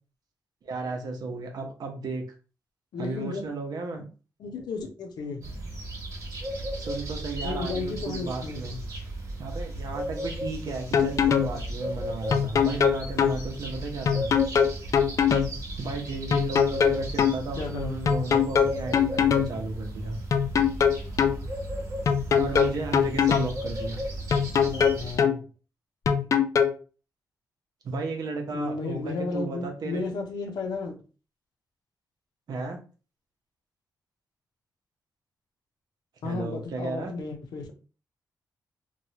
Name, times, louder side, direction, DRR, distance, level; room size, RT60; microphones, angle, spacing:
voice 1, 0.6-2.2 3.0-4.0 6.8-8.8 9.4-14.3 15.8-20.2 22.4-24.0 27.8-30.0 32.5-32.8 36.2-37.1, right 3 dB, 70° right, 3 dB, 0.8 m, -34 dB
voice 2, 2.9-3.5 4.4-5.5 7.4-8.8 17.6-18.0 24.5-25.4 28.5-31.0 36.2-37.7, left 4 dB, 85° left, 3 dB, 0.7 m, -33 dB
sound 1, 5.4-25.2, right 1 dB, 50° right, 1.1 m, -35 dB
sound 2, 10.7-11.5 12.3-13.4 14.1-15.5 16.3-17.4 18.1-19.5 20.3-21.4 22.1-23.5 24.3-25.4 26.1-26.7, left 7 dB, 50° left, 0.3 m, -22 dB
3.1 x 2.3 x 2.8 m, 0.36 s
wide cardioid pair, 120°, 7 cm